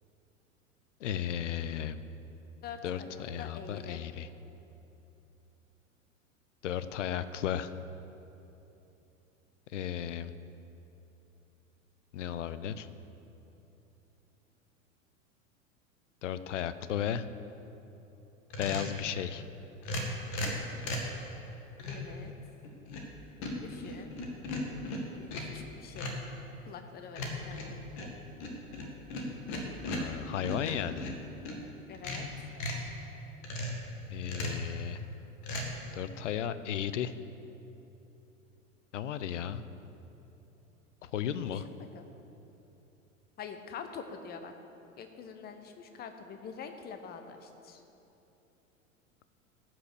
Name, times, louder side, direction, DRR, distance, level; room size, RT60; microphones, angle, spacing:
voice 1, 1.0-2.0 2.8-4.3 6.6-7.7 9.7-10.3 12.1-12.9 16.2-17.2 18.6-19.4 29.9-31.1 34.1-35.0 35.9-37.1 38.9-39.6 41.0-41.7, left 10 dB, 60° left, 13 dB, 0.7 m, -34 dB
voice 2, 2.6-4.0 20.4-20.8 21.9-22.3 23.6-24.1 25.1-26.2 26.7-27.8 31.9-32.3 41.6-42.1 43.4-44.5 45.0-47.8, left 6 dB, 25° left, 7 dB, 0.9 m, -45 dB
sound 1, 18.5-19.0 19.8-21.1 21.8-22.1 22.6-23.1 23.4-25.6 26.0-26.3 27.1-31.6 31.9-32.9 33.4-33.8 34.2-34.7 35.4-35.7, left 1 dB, 40° left, 1.9 m, -37 dB
14.5 x 6.0 x 6.8 m, 3.0 s
figure-of-eight pair, 90°, 41 cm